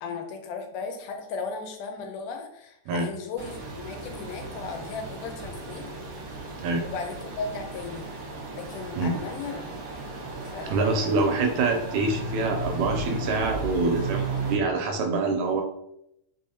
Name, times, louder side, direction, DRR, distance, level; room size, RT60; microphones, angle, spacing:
voice 1, 0.0-5.9 6.8-8.1 8.5-9.6 10.4-11.2, left 5 dB, 85° left, 5 dB, 2.2 m, -36 dB
sound 1, 3.4-14.5, right 3 dB, 60° right, 1.2 m, -35 dB
voice 2, 10.7-15.6, right 3 dB, 80° right, 4 dB, 1.8 m, -25 dB
4.7 x 3.7 x 2.7 m, 0.79 s
omnidirectional pair, 3.6 m